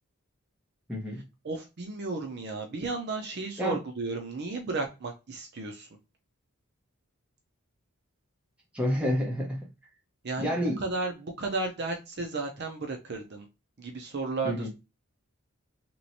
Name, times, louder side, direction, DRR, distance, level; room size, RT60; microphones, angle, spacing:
voice 1, 0.9-1.2 3.6-3.8 8.7-9.7 10.4-10.8 14.4-14.7, equal, 5° right, 0.9 m, -29 dB
voice 2, 1.4-5.9 10.2-10.5 10.8-13.5 13.8-14.7, right 3 dB, 50° right, 0.5 m, -33 dB
3.0 x 3.0 x 2.7 m
head